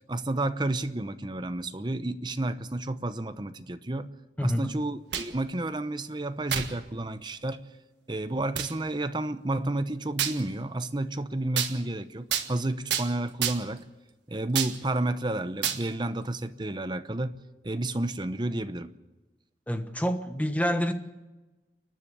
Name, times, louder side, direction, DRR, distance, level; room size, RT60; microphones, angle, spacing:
voice 1, 0.1-4.1 4.4-7.7 8.1-13.8 14.3-18.9, right 2 dB, 25° right, 11 dB, 0.8 m, -31 dB
sound 1, 4.9-5.4 6.5-6.7 7.4-7.5 8.6-8.7 10.2-10.4 11.6-11.7 12.3-12.5 12.9-13.1 13.4-13.8 14.5-14.8 15.6-15.8, right 9 dB, 85° right, 1.6 m, -29 dB
voice 2, 19.7-20.9, equal, 10° left, 7 dB, 1.2 m, -27 dB
29.5 x 10.5 x 8.4 m, 1.1 s
head